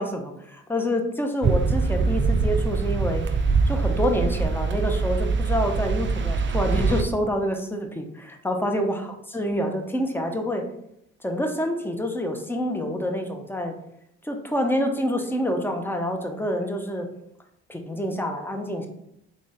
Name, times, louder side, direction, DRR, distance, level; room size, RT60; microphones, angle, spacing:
voice 1, 0.0-3.2 3.7-10.6 11.2-13.8 14.2-17.1 17.7-18.9, equal, 5° left, 4 dB, 0.8 m, -27 dB
sound 1, 1.4-7.0, right 4 dB, 35° right, 0.6 m, -23 dB
3.8 x 3.2 x 3.8 m, 0.77 s
hypercardioid pair, 50°, 32 cm